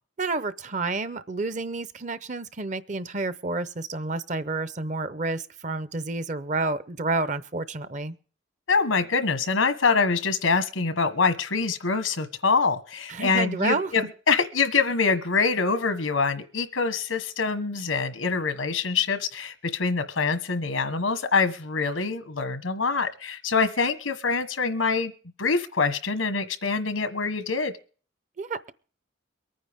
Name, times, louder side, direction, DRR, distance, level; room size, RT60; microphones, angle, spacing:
voice 1, 0.2-8.2 13.1-13.9 28.4-28.7, right 3 dB, 40° right, 14 dB, 0.7 m, -29 dB
voice 2, 8.7-25.1 25.4-27.7, left 4 dB, 90° left, 10 dB, 1.3 m, -25 dB
23.5 x 9.5 x 3.6 m, 0.41 s
head